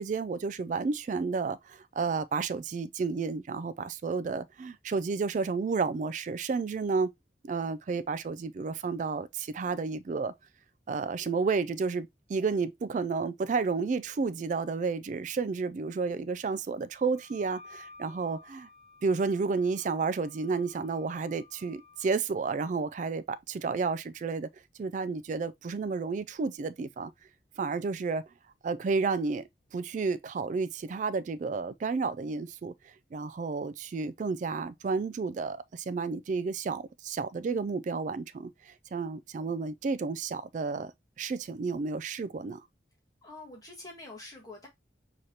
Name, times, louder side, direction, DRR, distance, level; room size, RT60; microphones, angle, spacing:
voice 1, 0.0-7.1 7.4-10.3 10.9-18.7 19.0-24.5 24.8-27.1 27.6-28.2 28.6-40.9 41.2-42.6, right 4 dB, 45° right, 0.3 m, -31 dB
Wind instrument woodwind instrument, 17.1-22.1, left 3 dB, 65° right, 1.3 m, -54 dB
voice 2, 43.2-44.7, left 2 dB, 20° left, 1.4 m, -46 dB
6.3 x 3.0 x 2.8 m
head